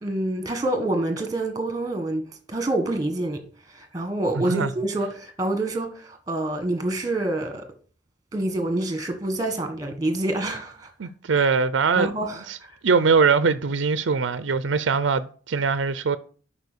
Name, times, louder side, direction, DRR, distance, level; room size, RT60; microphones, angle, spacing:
voice 1, 0.0-3.4 3.7-7.7 8.3-10.9 11.4-11.5 12.0-12.8, right 1 dB, 20° right, 1.5 m, -27 dB
voice 2, 4.4-4.7 11.0-12.1 12.5-12.6 12.8-16.2, right 5 dB, 80° right, 0.5 m, -22 dB
8.1 x 5.7 x 6.7 m
head